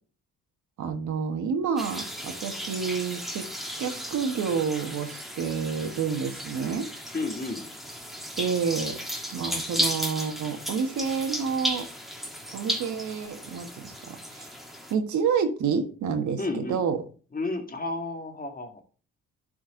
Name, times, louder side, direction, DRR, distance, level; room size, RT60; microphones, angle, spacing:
voice 1, 0.8-3.5 3.8-6.9 8.4-9.0 9.3-11.9 12.5-14.5 14.9-17.0, right 6 dB, 75° right, 6 dB, 1.6 m, -29 dB
sound 1, 1.8-14.9, equal, ahead, 1.6 m, -35 dB
voice 2, 7.1-7.7 16.4-16.8 17.3-18.8, left 2 dB, 30° left, 4 dB, 2.0 m, -32 dB
11.0 x 4.6 x 3.9 m, 0.38 s
cardioid pair, 90°, 30 cm